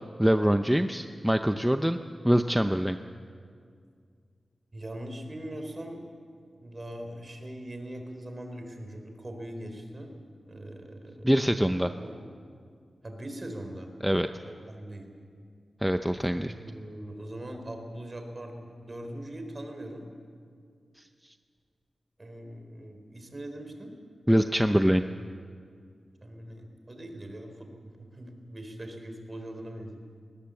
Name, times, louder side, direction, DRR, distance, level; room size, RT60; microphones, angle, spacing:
voice 1, 0.2-2.0 2.2-3.0 11.2-11.9 14.0-14.3 15.8-16.5 21.0-21.1 24.3-25.0, equal, 5° right, 8 dB, 0.6 m, -24 dB
voice 2, 4.7-6.1 6.5-10.1 10.5-11.3 11.7-12.2 13.0-13.9 14.4-15.1 16.5-20.1 22.2-23.9 24.4-24.8 26.2-30.0, right 1 dB, 30° right, 4 dB, 3.8 m, -41 dB
20.5 x 19.0 x 7.7 m, 2.2 s
wide cardioid pair, 80°, 0 cm